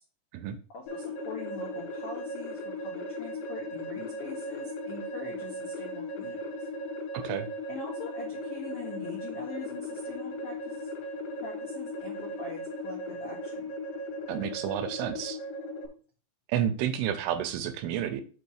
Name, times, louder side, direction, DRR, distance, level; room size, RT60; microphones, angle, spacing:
voice 1, 0.7-6.4 7.7-10.9 11.4-13.7, left 3 dB, 85° left, -4 dB, 1.3 m, -43 dB
sound 1, 0.9-15.9, left 1 dB, 65° left, 3.8 m, -37 dB
voice 2, 7.1-7.5 14.3-15.4 16.5-18.2, right 10 dB, 80° right, 9 dB, 3.0 m, -30 dB
7.9 x 3.0 x 6.2 m, 0.40 s
omnidirectional pair, 5.8 m